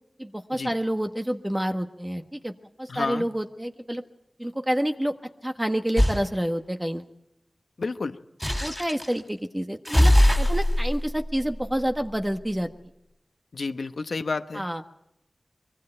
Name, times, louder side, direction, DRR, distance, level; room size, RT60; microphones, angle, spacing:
voice 1, 0.2-4.0 4.4-5.1 5.4-7.1 8.6-12.9 14.5-14.8, equal, 15° right, 5 dB, 1.4 m, -28 dB
voice 2, 2.9-3.2 7.8-8.2 13.5-14.6, left 3 dB, 80° left, 8 dB, 1.1 m, -30 dB
sound 1, 6.0-6.3 8.4-9.1 9.9-12.5, equal, 5° left, 3.2 m, -22 dB
25.0 x 23.0 x 4.5 m, 0.87 s
wide cardioid pair, 60°, 0 cm